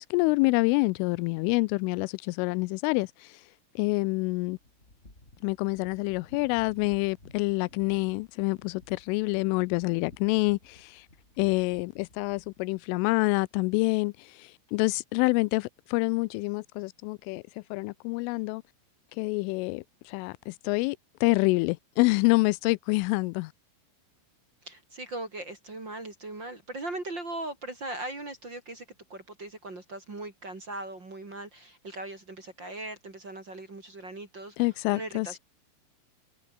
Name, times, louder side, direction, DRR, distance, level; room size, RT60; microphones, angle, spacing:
voice 1, 0.0-3.3 3.8-4.6 5.4-11.1 11.4-17.4 17.7-18.6 19.2-23.5 34.6-35.4, left 25 dB, 85° left, 3.1 m, -27 dB
sound 1, 4.4-12.8, left 2 dB, 15° left, 5.7 m, -55 dB
voice 2, 24.6-28.8 29.1-35.4, right 2 dB, 30° right, 2.9 m, -39 dB
omnidirectional pair, 5.6 m